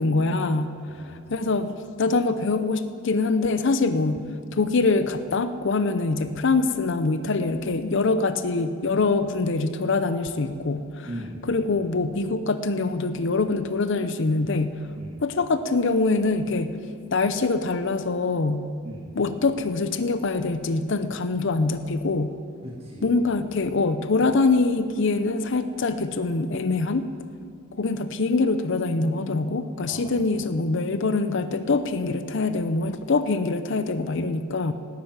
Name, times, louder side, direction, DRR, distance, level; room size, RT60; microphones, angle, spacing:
voice 1, 0.0-4.2 4.5-11.1 11.5-14.8 15.2-16.7 17.1-18.6 19.2-22.3 23.0-27.1 27.8-34.7, left 3 dB, 60° left, 10 dB, 0.6 m, -24 dB
voice 2, 0.9-1.4 11.1-11.5 15.0-15.2 18.8-19.2 22.6-23.2 29.9-30.7, equal, 30° right, -3 dB, 1.4 m, -40 dB
12.5 x 9.0 x 9.2 m, 2.4 s
head